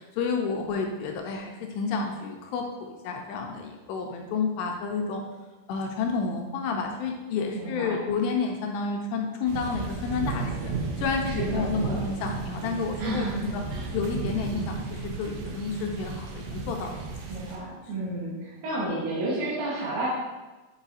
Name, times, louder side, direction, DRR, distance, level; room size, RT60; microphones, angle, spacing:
voice 1, 0.0-5.2 5.7-10.7 11.0-13.3 13.5-13.6 13.9-17.0, left 5 dB, 80° left, 2 dB, 2.6 m, -30 dB
voice 2, 7.5-8.0 11.2-12.0 13.0-13.9 17.3-20.1, right 1 dB, 65° right, -8 dB, 2.0 m, -31 dB
sound 1, 9.5-17.6, right 4 dB, 80° right, 2.2 m, -34 dB
8.1 x 4.7 x 2.7 m, 1.2 s
omnidirectional pair, 5.2 m